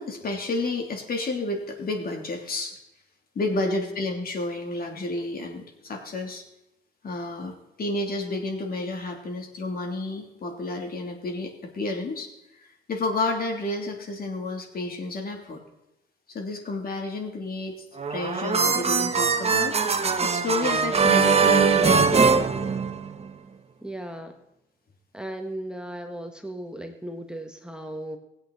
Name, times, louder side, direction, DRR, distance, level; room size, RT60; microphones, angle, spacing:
voice 1, 0.0-2.8 3.3-6.4 7.0-12.3 12.9-15.6 16.3-17.8 18.1-19.8 20.2-22.5, left 2 dB, 50° left, 3 dB, 3.0 m, -30 dB
voice 2, 3.5-3.9 23.8-24.4 25.1-28.2, right 1 dB, 5° right, 5 dB, 1.2 m, -36 dB
sound 1, 18.0-23.3, right 5 dB, 30° right, 1.1 m, -21 dB
20.0 x 8.3 x 4.1 m, 0.89 s
cardioid pair, 90°, 20 cm